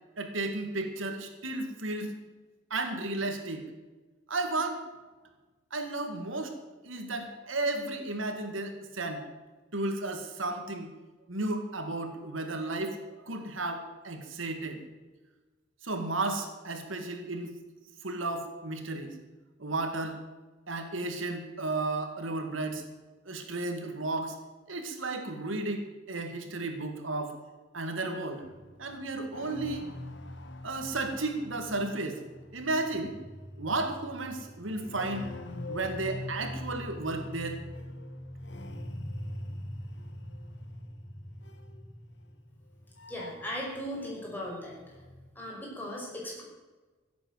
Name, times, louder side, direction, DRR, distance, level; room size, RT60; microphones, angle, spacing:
voice 1, 0.2-2.1 2.7-3.6 4.3-4.8 5.7-6.5 6.8-9.2 9.7-10.9 11.3-14.8 15.8-17.5 18.0-19.1 19.6-20.2 20.7-22.8 23.3-24.4 24.7-27.4 27.7-28.4 28.8-29.9 30.6-32.2 32.5-33.1 33.6-35.3 35.7-37.6, right 2 dB, 90° right, 5 dB, 2.2 m, -33 dB
sound 1, 28.4-44.2 44.5-45.3, left 1 dB, 60° left, 1.4 m, -43 dB
voice 2, 43.1-44.8 45.4-46.4, equal, 10° left, -4 dB, 5.4 m, -37 dB
16.0 x 8.4 x 8.0 m, 1.2 s
head